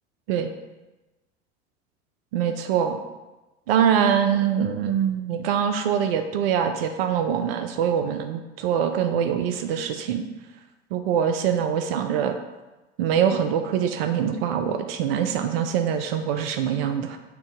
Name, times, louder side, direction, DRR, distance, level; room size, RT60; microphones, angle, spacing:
voice 1, 2.3-3.0 3.7-10.2 10.9-12.4 13.0-17.2, right 8 dB, 60° right, 7 dB, 0.5 m, -24 dB
5.7 x 2.6 x 3.6 m, 1.1 s
figure-of-eight pair, 75°, 34 cm